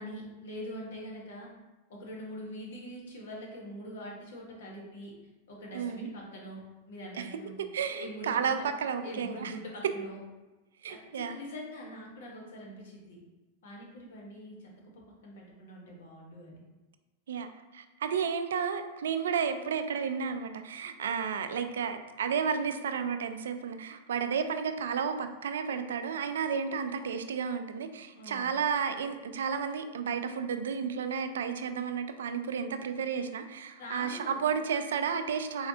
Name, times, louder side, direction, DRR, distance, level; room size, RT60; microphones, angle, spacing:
voice 1, 0.0-1.5 1.9-5.1 5.5-6.6 6.9-7.6 8.0-8.7 9.0-10.2 10.9-13.2 13.6-16.6 28.1-28.5 33.8-34.4, equal, 75° left, -2 dB, 1.2 m, -43 dB
voice 2, 5.7-6.1 7.1-7.3 7.7-9.5 10.8-11.4 17.3-17.5 17.7-35.7, right 6 dB, 80° right, 8 dB, 0.3 m, -32 dB
4.2 x 3.1 x 2.8 m, 1.1 s
hypercardioid pair, 110°, 0 cm